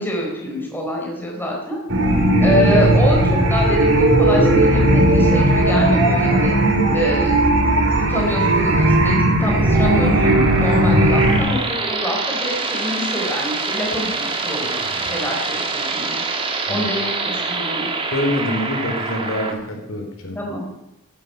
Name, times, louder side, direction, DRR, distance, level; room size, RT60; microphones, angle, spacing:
voice 1, 0.0-1.8 2.4-6.5 6.9-7.3 7.9-16.2 16.7-17.9 20.3-20.9, equal, 10° left, -1 dB, 4.0 m, -25 dB
sound 1, 1.9-11.4, right 1 dB, 55° right, 4.3 m, -16 dB
sound 2, 9.5-19.5, right 3 dB, 25° right, 1.8 m, -26 dB
voice 2, 18.1-20.4, left 1 dB, 65° left, 3 dB, 3.4 m, -25 dB
17.0 x 12.0 x 5.8 m, 0.94 s
head